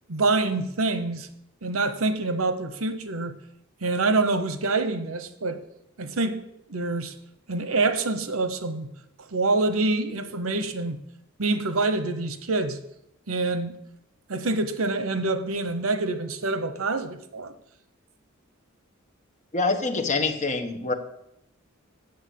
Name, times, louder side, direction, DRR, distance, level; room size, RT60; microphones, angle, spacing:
voice 1, 0.1-1.3 1.6-3.4 3.8-5.6 6.0-6.4 6.7-7.1 7.5-8.9 9.3-11.0 11.4-12.8 13.3-13.8 14.3-17.5, right 3 dB, 85° right, 1.0 m, -26 dB
voice 2, 19.5-20.9, left 3 dB, 35° left, 1.2 m, -25 dB
8.1 x 6.7 x 8.4 m
head